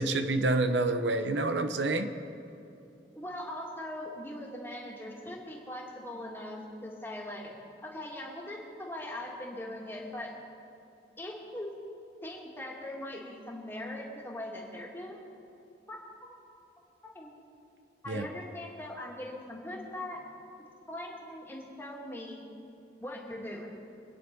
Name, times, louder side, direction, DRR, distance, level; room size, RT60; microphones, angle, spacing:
voice 1, 0.0-2.1 18.1-18.3, right 2 dB, 90° right, 9 dB, 0.9 m, -28 dB
voice 2, 3.1-7.5 7.8-10.3 11.2-11.7 12.2-15.2 15.9-16.3 17.0-17.3 18.0-20.2 20.9-22.4 23.0-23.7, left 1 dB, 15° left, -2 dB, 2.4 m, -41 dB
25.5 x 9.8 x 5.3 m, 2.8 s
head